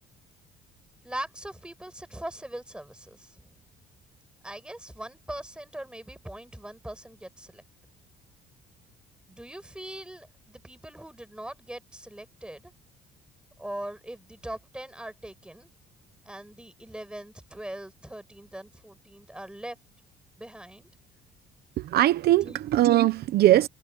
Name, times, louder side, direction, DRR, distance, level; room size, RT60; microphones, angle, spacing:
voice 1, 1.0-3.5 4.4-7.6 9.3-12.7 13.6-15.7 16.3-19.8 20.4-20.9 22.4-22.6, right 1 dB, 5° right, 7.1 m, -41 dB
voice 2, 21.8-23.7, right 14 dB, 70° right, 1.0 m, -21 dB
cardioid pair, 110°, 17 cm